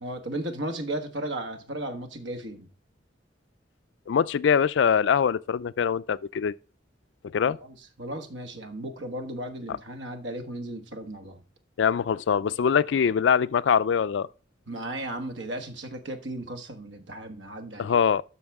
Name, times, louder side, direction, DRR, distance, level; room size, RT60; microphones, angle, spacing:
voice 1, 0.0-2.7 7.5-11.4 14.7-18.0, right 1 dB, 75° right, 1.4 m, -35 dB
voice 2, 4.1-6.5 7.3-7.6 11.8-14.3 17.8-18.2, left 7 dB, 75° left, 0.4 m, -23 dB
12.5 x 5.8 x 3.5 m
head